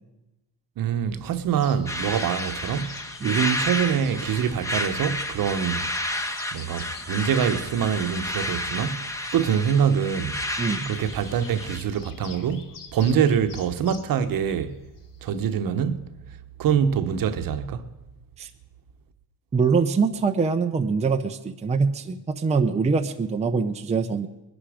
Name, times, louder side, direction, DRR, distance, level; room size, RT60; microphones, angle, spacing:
voice 1, 0.8-2.9 3.2-5.9 6.5-9.0 9.3-10.4 10.9-14.7 15.2-16.0 16.6-17.8, right 8 dB, 55° right, 1.1 m, -24 dB
sound 1, 1.5-15.6, left 5 dB, 50° left, 1.8 m, -48 dB
sound 2, 1.9-11.8, left 1 dB, 5° left, 1.2 m, -31 dB
voice 2, 10.6-10.9 18.4-18.5 19.5-24.3, right 5 dB, 15° right, 0.6 m, -24 dB
21.0 x 11.5 x 5.0 m
cardioid pair, 130°, 42 cm